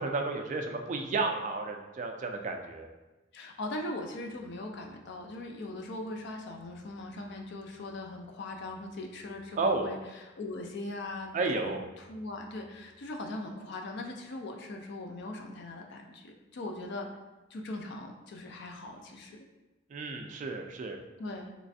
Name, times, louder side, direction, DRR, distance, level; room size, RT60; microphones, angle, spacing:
voice 1, 0.0-2.9 9.6-9.9 11.3-11.8 19.9-21.0, right 3 dB, 40° right, 4 dB, 0.3 m, -32 dB
voice 2, 3.3-11.3 11.6-17.1 17.5-19.4 21.2-21.5, left 2 dB, 60° left, 3 dB, 0.4 m, -40 dB
3.2 x 3.0 x 2.6 m, 1.1 s
head